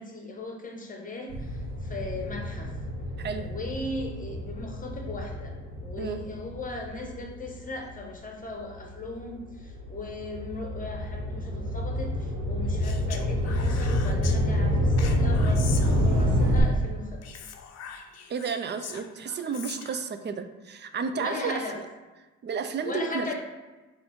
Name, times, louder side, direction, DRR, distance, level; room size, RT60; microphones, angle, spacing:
voice 1, 0.0-2.7 3.4-17.4 21.1-21.8 22.8-23.3, left 2 dB, 25° left, 1 dB, 0.9 m, -38 dB
sound 1, 1.3-8.0 8.6-16.6, equal, 75° right, 1.0 m, -28 dB
voice 2, 3.2-3.5 6.0-6.2 18.3-21.6 22.4-23.3, right 6 dB, 35° right, 9 dB, 0.4 m, -32 dB
Speech, 12.8-14.4 15.0-16.4 17.2-20.1, left 7 dB, 55° left, 0.5 m, -42 dB
4.0 x 2.6 x 4.5 m, 1.2 s
cardioid pair, 90°, 30 cm